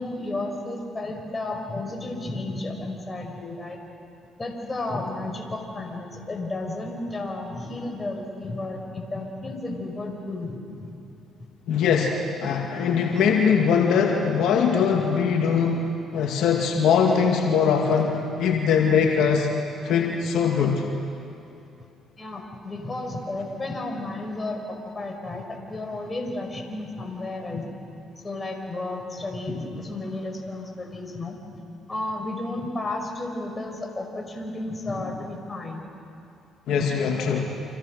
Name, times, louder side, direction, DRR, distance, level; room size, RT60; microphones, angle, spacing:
voice 1, 0.0-3.8 4.4-10.9 22.2-27.6 28.2-31.4 31.9-35.8 36.8-36.9, left 2 dB, 25° left, 2 dB, 5.7 m, -32 dB
voice 2, 11.7-19.5 19.8-20.8 36.7-37.5, left 6 dB, 75° left, 1 dB, 2.2 m, -22 dB
29.5 x 27.0 x 6.6 m, 2.7 s
supercardioid pair, 75°, 0 cm